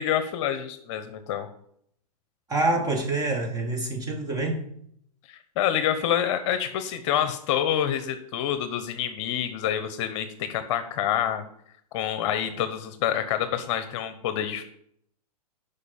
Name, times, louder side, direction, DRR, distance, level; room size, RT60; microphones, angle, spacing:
voice 1, 0.0-1.5 5.3-11.4 11.9-14.6, left 10 dB, 45° left, 10 dB, 1.0 m, -27 dB
voice 2, 2.5-4.6, right 2 dB, 15° right, 2 dB, 2.2 m, -26 dB
8.3 x 5.5 x 7.2 m, 0.68 s
hypercardioid pair, 130°, 20 cm